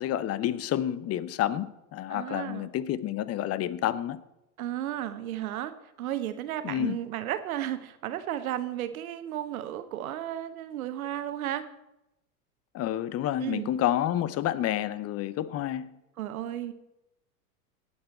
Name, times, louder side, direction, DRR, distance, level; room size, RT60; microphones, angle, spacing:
voice 1, 0.0-4.2 6.6-7.0 12.7-16.0, left 12 dB, 35° left, 0.8 m, -29 dB
voice 2, 2.1-2.7 4.6-11.7 13.4-13.7 16.2-16.7, right 12 dB, 75° right, 1.2 m, -34 dB
18.0 x 7.3 x 4.4 m
hypercardioid pair, 90°, 43 cm